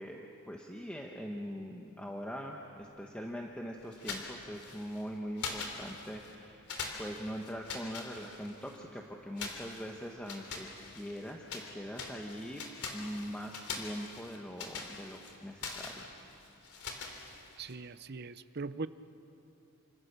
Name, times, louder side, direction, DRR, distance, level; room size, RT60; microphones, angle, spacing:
voice 1, 0.0-6.7 7.0-12.6 12.9-16.1, equal, 5° left, 0 dB, 1.2 m, -42 dB
sound 1, 3.9-5.0 5.4-6.3 6.7-8.8 9.4-11.7 11.9-17.7, left 4 dB, 90° left, 3.6 m, -43 dB
voice 2, 17.6-18.9, right 3 dB, 45° right, 13 dB, 0.7 m, -40 dB
29.0 x 26.0 x 6.8 m, 2.8 s
head